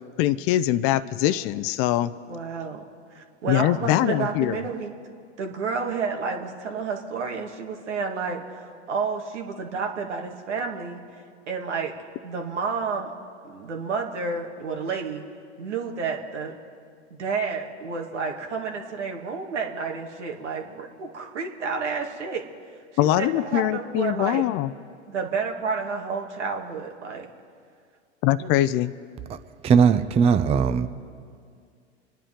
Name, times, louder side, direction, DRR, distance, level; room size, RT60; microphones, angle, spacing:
voice 1, 0.2-2.1 3.5-4.6 23.0-24.7 28.2-28.9, left 14 dB, 40° left, 0.5 m, -22 dB
voice 2, 2.3-2.8 3.1-4.9 5.4-11.0 11.5-11.9 12.2-13.1 13.4-15.2 15.6-16.5 17.1-22.4 23.0-24.4 25.1-27.3 28.4-28.5, right 5 dB, 85° right, 2.0 m, -30 dB
voice 3, 29.6-30.9, right 6 dB, 20° right, 0.5 m, -19 dB
26.5 x 10.0 x 3.8 m
hypercardioid pair, 110°, 34 cm